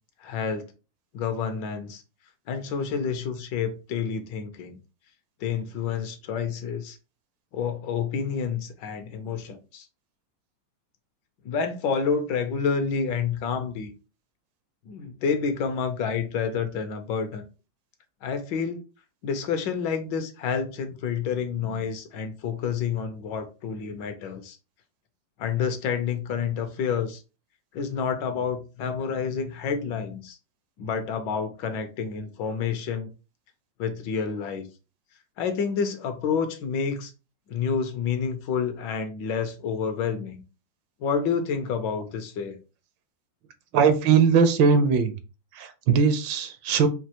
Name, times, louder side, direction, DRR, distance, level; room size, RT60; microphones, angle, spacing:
voice 1, 0.2-0.7 1.1-2.0 2.5-4.8 5.4-7.0 7.5-9.9 11.4-13.9 14.9-17.4 18.2-18.8 19.2-24.6 25.4-27.2 27.7-30.4 30.8-33.1 33.8-34.7 35.4-37.1 37.5-40.4 41.0-42.6, left 6 dB, 75° left, 1.4 m, -29 dB
voice 2, 43.7-45.1 45.6-46.9, right 6 dB, 75° right, 1.4 m, -20 dB
5.4 x 2.7 x 2.9 m
omnidirectional pair, 2.1 m